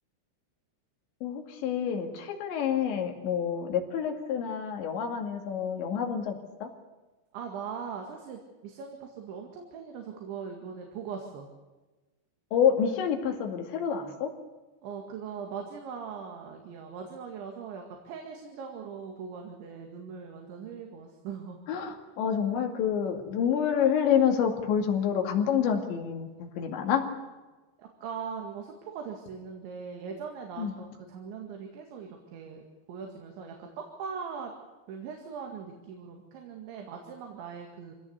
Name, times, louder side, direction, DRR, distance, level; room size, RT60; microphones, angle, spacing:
voice 1, 1.2-6.7 12.5-14.3 21.7-27.1 30.6-30.7, left 8 dB, 75° left, 4 dB, 4.5 m, -28 dB
voice 2, 7.3-11.5 14.8-21.6 27.8-32.6 32.9-34.5 34.9-37.9, right 6 dB, 80° right, 2 dB, 4.4 m, -40 dB
25.5 x 17.5 x 8.1 m, 1.2 s
omnidirectional pair, 5.2 m